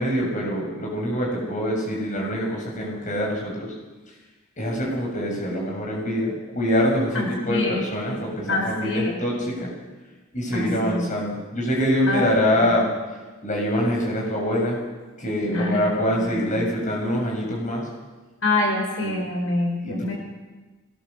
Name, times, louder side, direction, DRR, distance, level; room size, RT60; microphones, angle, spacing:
voice 1, 0.0-3.7 4.6-9.7 10.3-12.9 13.4-14.8 15.2-17.9 19.0-19.2 19.8-20.1, equal, 40° left, -1 dB, 7.1 m, -25 dB
voice 2, 7.1-7.8 8.5-9.1 10.5-11.1 12.1-12.5 15.5-15.8 16.2-16.6 18.4-20.1, left 2 dB, 85° left, 1 dB, 5.9 m, -26 dB
22.5 x 20.5 x 7.0 m, 1.2 s
head